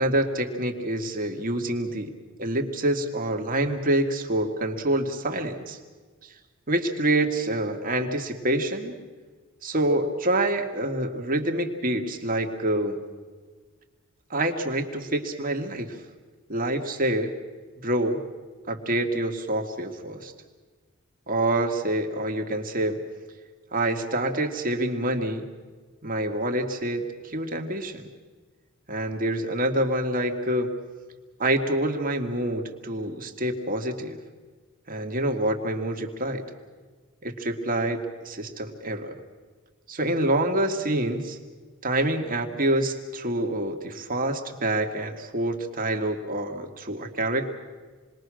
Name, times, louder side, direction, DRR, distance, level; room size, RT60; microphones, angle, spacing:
voice 1, 0.0-2.1 2.4-5.8 6.7-9.0 9.6-13.0 14.3-16.0 16.5-17.3 17.8-18.2 18.7-20.3 21.3-23.0 23.7-25.4 26.0-28.0 28.9-30.7 31.4-34.2 34.9-36.4 37.2-39.1 39.9-41.4 41.8-47.5, right 1 dB, 40° right, 3 dB, 2.1 m, -26 dB
28.0 x 21.0 x 6.4 m, 1.4 s
head